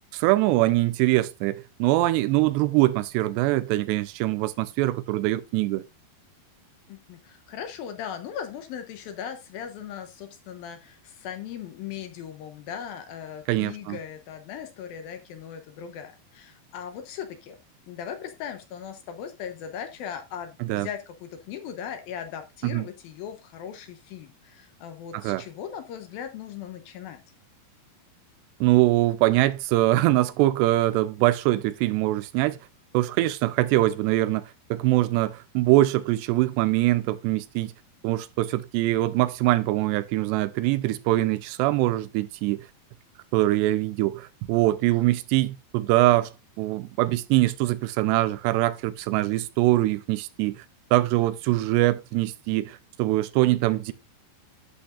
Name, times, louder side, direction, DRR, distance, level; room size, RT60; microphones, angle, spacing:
voice 1, 0.1-5.8 13.5-14.0 20.6-20.9 22.6-22.8 25.1-25.4 28.6-32.6 32.9-34.4 34.7-37.7 38.0-42.6 43.3-50.6 50.9-53.9, right 17 dB, 85° right, 2.8 m, -23 dB
voice 2, 6.9-17.6 17.9-27.2, left 8 dB, 70° left, 2.5 m, -38 dB
11.5 x 7.9 x 2.5 m
omnidirectional pair, 4.9 m